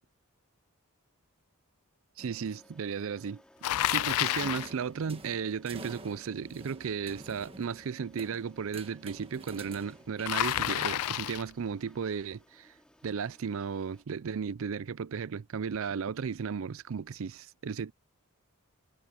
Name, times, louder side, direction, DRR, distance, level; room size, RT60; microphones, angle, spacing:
sound 1, 2.2-14.0, equal, 5° left, 4.0 m, -62 dB
voice 1, 2.2-3.4 3.9-12.7 13.0-17.9, right 6 dB, 60° right, 0.4 m, -35 dB
Bicycle, 3.6-4.7 10.2-11.5, left 13 dB, 85° left, 0.4 m, -29 dB
sound 2, 4.2-11.0, right 2 dB, 25° right, 1.6 m, -49 dB
head